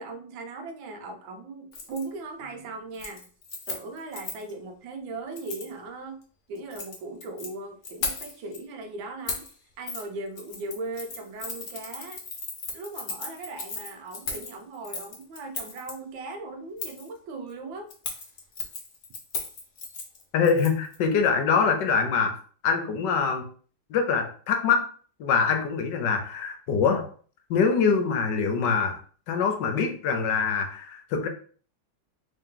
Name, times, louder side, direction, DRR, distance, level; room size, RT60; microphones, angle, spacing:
voice 1, 0.0-3.3 3.7-6.2 6.5-9.5 9.8-12.2 12.7-17.9, right 3 dB, 85° right, 1.4 m, -38 dB
Keys jangling, 1.7-2.0 2.4-2.7 2.9-4.5 5.4-5.7 6.6-7.5 7.8-8.6 9.3-9.5 9.9-10.0 10.4-15.9 16.8-17.1 17.9-21.0 21.2-21.3, left 4 dB, 55° left, 1.1 m, -36 dB
voice 2, 20.3-22.4 22.6-23.5 23.9-24.9 25.2-27.1 27.5-29.0 29.3-31.3, left 5 dB, 75° left, 1.3 m, -24 dB
3.5 x 2.9 x 3.7 m
omnidirectional pair, 2.0 m